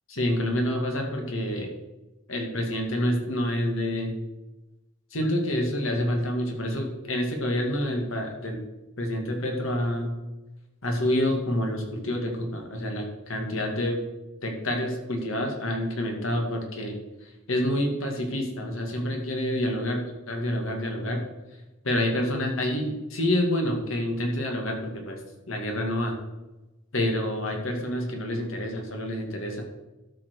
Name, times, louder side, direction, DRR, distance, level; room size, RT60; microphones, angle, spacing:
voice 1, 0.1-1.7 2.3-4.1 5.1-8.6 9.0-10.2 10.8-14.0 14.4-20.0 20.3-21.3 21.8-25.2 25.5-26.1 26.9-29.6, left 1 dB, 75° left, 2 dB, 2.2 m, -28 dB
12.5 x 6.0 x 4.8 m, 1.0 s
head